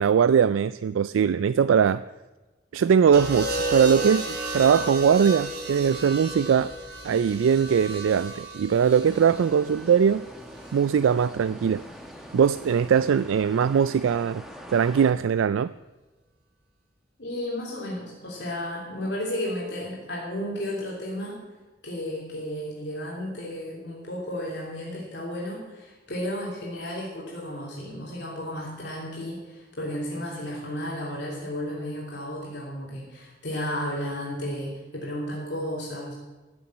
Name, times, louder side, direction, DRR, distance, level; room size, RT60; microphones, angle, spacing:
voice 1, 0.0-2.0 2.7-6.7 7.0-10.2 10.7-11.8 12.3-14.4 14.7-15.7, right 7 dB, 90° right, 15 dB, 0.3 m, -21 dB
sound 1, 3.1-11.3 12.5-12.9, right 2 dB, 55° right, 3.1 m, -34 dB
sound 2, 9.0-15.1, equal, ahead, 1.3 m, -44 dB
voice 2, 17.2-21.4 21.8-36.1, left 1 dB, 60° left, -4 dB, 3.1 m, -33 dB
15.0 x 7.1 x 9.6 m, 1.2 s
head